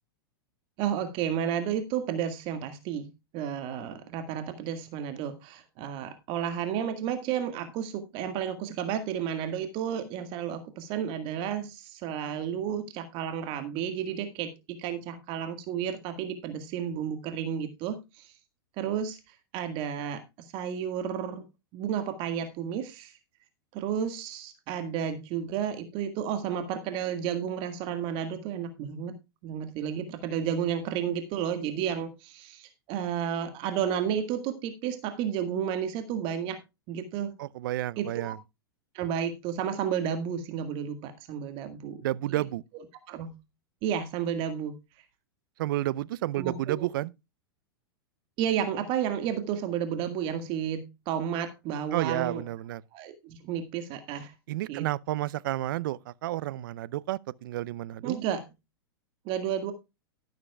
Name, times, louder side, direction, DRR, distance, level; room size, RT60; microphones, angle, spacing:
voice 1, 0.8-18.3 18.8-21.4 21.7-23.1 23.7-29.1 29.4-36.6 36.9-37.3 38.0-38.3 38.9-42.0 42.3-42.4 43.1-43.3 43.8-44.7 46.4-46.9 48.4-52.4 52.9-54.3 54.7-54.9 58.0-58.5 59.3-59.7, right 8 dB, 45° right, 1.8 m, -32 dB
voice 2, 37.4-38.4 42.0-42.6 45.6-47.1 51.9-52.8 54.5-58.2, right 15 dB, 60° right, 0.6 m, -31 dB
13.0 x 12.0 x 2.3 m
hypercardioid pair, 100°, 13 cm